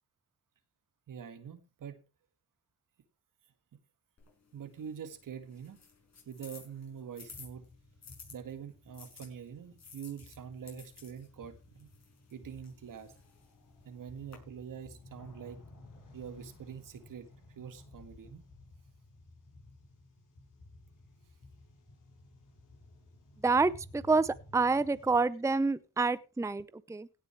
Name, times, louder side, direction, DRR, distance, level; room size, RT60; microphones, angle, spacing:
voice 1, 1.1-2.0 4.5-5.8 6.3-7.7 8.3-11.9 12.3-13.1 13.8-15.6 16.1-18.4, right 7 dB, 70° right, 2.0 m, -45 dB
sound 1, 4.2-8.3 8.9-14.3, left 5 dB, 50° left, 6.5 m, -55 dB
sound 2, 7.2-25.2, left 2 dB, 65° left, 5.8 m, -56 dB
voice 2, 23.4-27.1, right 3 dB, 10° right, 0.6 m, -28 dB
17.0 x 6.9 x 4.5 m
cardioid pair, 70°, 33 cm